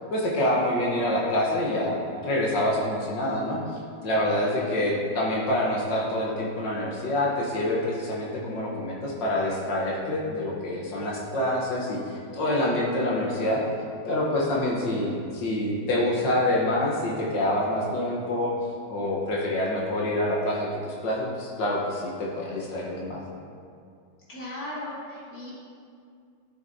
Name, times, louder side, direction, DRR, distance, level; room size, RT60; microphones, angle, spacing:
voice 1, 0.1-3.6 4.0-13.6 14.0-18.5 18.9-23.2, left 1 dB, 75° left, -4 dB, 1.8 m, -26 dB
voice 2, 4.5-4.9 24.3-25.5, left 1 dB, 55° left, -9 dB, 2.9 m, -37 dB
12.5 x 6.6 x 2.7 m, 2.3 s
omnidirectional pair, 2.0 m